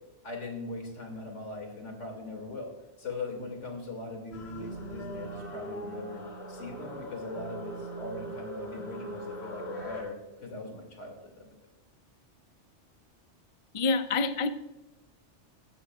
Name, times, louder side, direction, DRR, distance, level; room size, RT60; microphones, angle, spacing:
voice 1, 0.2-6.2 6.5-11.5, left 3 dB, 85° left, 2 dB, 2.6 m, -40 dB
sound 1, 4.3-10.0, equal, 60° left, 2.3 m, -41 dB
sound 2, 4.4-10.1, right 7 dB, 60° right, 1.0 m, -47 dB
voice 2, 13.7-14.5, left 3 dB, 40° left, 10 dB, 0.5 m, -27 dB
15.5 x 12.5 x 2.3 m, 1.0 s
omnidirectional pair, 1.2 m